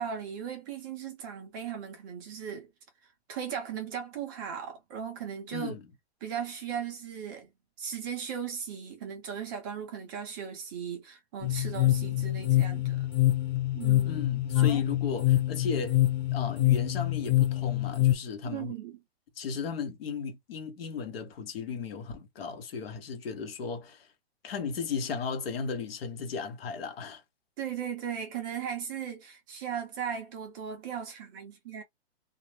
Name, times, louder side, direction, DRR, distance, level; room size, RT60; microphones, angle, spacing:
voice 1, 0.0-2.7 3.3-5.8 6.2-7.5 7.8-13.1 13.7-14.2 14.5-14.8 18.4-19.0 27.6-31.8, right 8 dB, 20° right, 0.5 m, -37 dB
voice 2, 5.5-5.8 14.0-16.0 16.3-18.7 19.4-24.1 24.4-27.2, left 5 dB, 65° left, 1.0 m, -35 dB
sound 1, 11.4-18.1, left 15 dB, 40° left, 1.2 m, -26 dB
2.4 x 2.0 x 3.0 m
hypercardioid pair, 160°, 33 cm